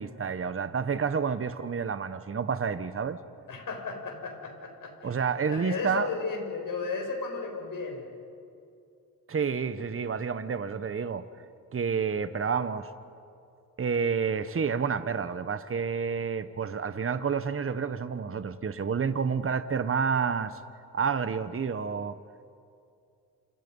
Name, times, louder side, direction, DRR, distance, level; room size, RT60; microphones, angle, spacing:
voice 1, 0.0-3.2 5.0-6.1 9.3-11.2 11.7-12.9 13.8-20.6 20.9-22.2, right 6 dB, 40° right, 11 dB, 1.3 m, -29 dB
voice 2, 3.5-5.1 5.5-8.1, left 4 dB, 65° left, 2 dB, 7.2 m, -34 dB
28.5 x 28.0 x 5.6 m, 2.5 s
cardioid pair, 65°, 35 cm